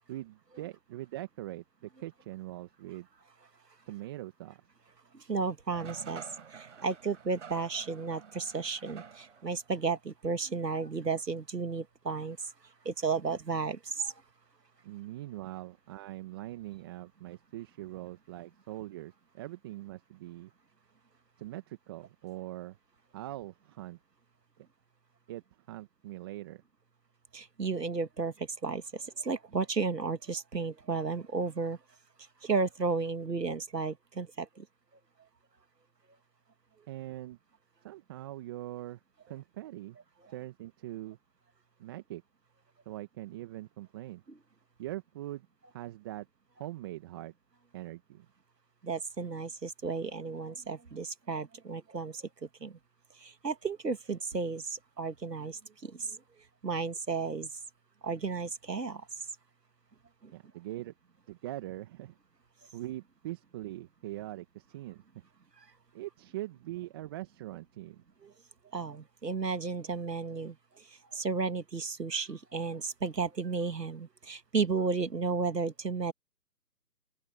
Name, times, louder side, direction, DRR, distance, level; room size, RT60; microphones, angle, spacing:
voice 1, 0.1-3.1 3.9-4.6 14.8-20.5 21.4-22.8 23.1-24.0 25.3-25.4 25.7-26.6 36.9-37.4 37.8-39.0 39.3-40.0 40.3-41.2 41.8-42.2 42.8-44.2 44.8-45.5 45.7-46.3 46.6-47.3 47.7-48.2 60.3-60.9 61.3-62.2 62.7-65.2 65.9-68.0, right 15 dB, 15° right, 1.7 m, -42 dB
voice 2, 5.3-6.2 6.5-12.4 12.9-14.1 27.3-28.3 28.6-31.8 32.4-34.6 48.8-52.2 52.6-52.7 53.2-55.9 56.6-57.5 58.0-59.0 68.7-70.5 71.1-76.1, right 4 dB, 75° right, 2.3 m, -33 dB
sound 1, 5.7-9.6, right 7 dB, 45° right, 5.4 m, -49 dB
open air
figure-of-eight pair, 155°, 50 cm